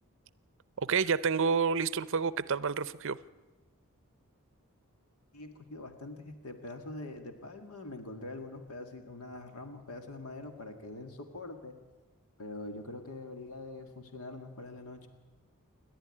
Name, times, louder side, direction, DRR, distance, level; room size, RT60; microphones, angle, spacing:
voice 1, 0.8-3.2, right 5 dB, 60° right, 17 dB, 0.6 m, -29 dB
voice 2, 5.3-11.8 12.4-15.1, left 2 dB, 75° left, 6 dB, 1.9 m, -44 dB
28.5 x 11.5 x 9.9 m, 1.2 s
head